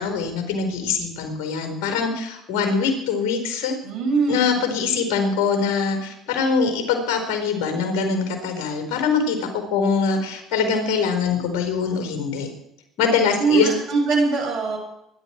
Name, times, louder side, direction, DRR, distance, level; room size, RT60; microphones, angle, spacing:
voice 1, 0.0-3.8 4.3-12.5 13.0-13.7, left 5 dB, 70° left, 5 dB, 4.5 m, -23 dB
voice 2, 3.8-4.5 13.4-14.8, right 4 dB, 60° right, 2 dB, 6.6 m, -21 dB
23.5 x 11.5 x 4.6 m, 0.81 s
hypercardioid pair, 75°, 0 cm